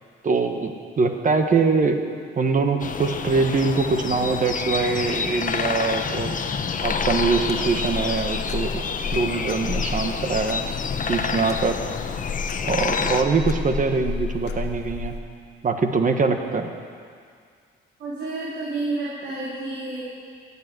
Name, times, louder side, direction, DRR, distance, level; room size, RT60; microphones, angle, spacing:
voice 1, 0.2-2.0 2.4-6.4 6.8-8.8 9.1-10.6 11.1-11.8 12.6-15.1 15.6-16.7, right 4 dB, 40° right, 6 dB, 1.3 m, -23 dB
sound 1, 2.8-13.2, left 5 dB, 40° left, 0.9 m, -28 dB
sound 2, 6.8-15.2, left 5 dB, 55° left, 1.4 m, -32 dB
voice 2, 18.0-20.0, right 2 dB, 70° right, -7 dB, 3.5 m, -30 dB
14.0 x 8.5 x 9.3 m, 2.1 s
cardioid pair, 90°, 20 cm